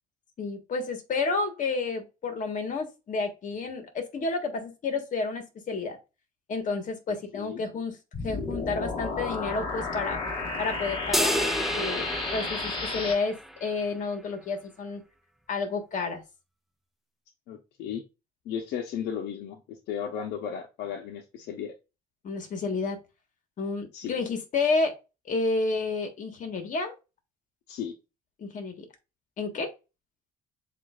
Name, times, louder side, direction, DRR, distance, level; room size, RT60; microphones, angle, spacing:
voice 1, 0.4-6.0 6.5-8.0 8.2-10.2 10.6-12.0 12.3-15.0 15.5-16.2 22.2-23.0 23.6-24.9 25.2-26.9 28.4-28.8 29.4-29.7, left 3 dB, 50° left, 6 dB, 1.4 m, -30 dB
voice 2, 7.1-7.7 17.5-18.0 18.4-19.6 19.9-21.7 23.9-24.2 27.7-27.9, left 8 dB, 75° left, 1 dB, 0.8 m, -35 dB
sound 1, 8.1-13.1, left 3 dB, 30° left, 1.6 m, -32 dB
sound 2, 11.1-13.7, equal, ahead, 0.4 m, -30 dB
7.4 x 2.6 x 2.4 m, 0.27 s
cardioid pair, 110°, 17 cm